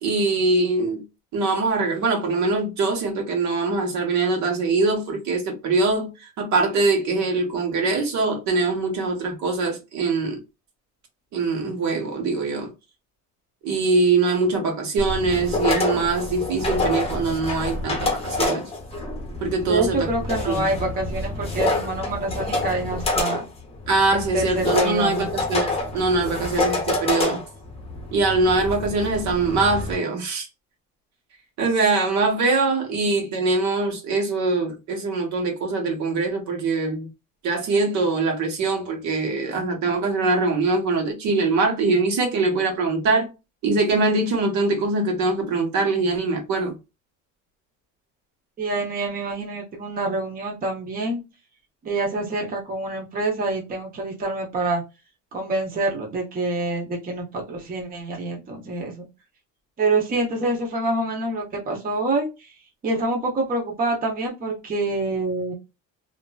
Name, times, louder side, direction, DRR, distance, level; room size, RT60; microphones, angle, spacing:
voice 1, 0.0-1.0 1.3-10.4 11.3-12.7 13.6-18.7 19.4-20.1 20.5-20.7 23.9-27.4 28.1-30.5 31.6-37.1 37.4-43.3 43.6-46.8, right 3 dB, 65° right, 1.2 m, -23 dB
sound 1, 15.0-29.9, left 2 dB, 20° left, 0.8 m, -27 dB
voice 2, 19.6-23.4 24.1-25.3 48.6-51.2 51.8-54.8 55.3-59.1 59.8-62.5 62.8-65.5, right 2 dB, 30° right, 0.9 m, -26 dB
2.9 x 2.6 x 2.2 m
cardioid pair, 155°, 30 cm